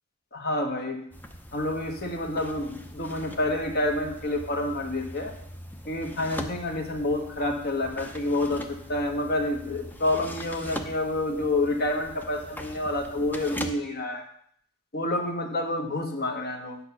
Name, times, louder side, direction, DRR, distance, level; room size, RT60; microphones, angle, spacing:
voice 1, 0.3-1.0 1.5-5.3 5.9-14.3 14.9-16.8, left 1 dB, 45° left, 3 dB, 1.4 m, -28 dB
sound 1, 1.1-13.7, equal, 10° left, 0.6 m, -41 dB
8.6 x 5.5 x 5.9 m, 0.66 s
head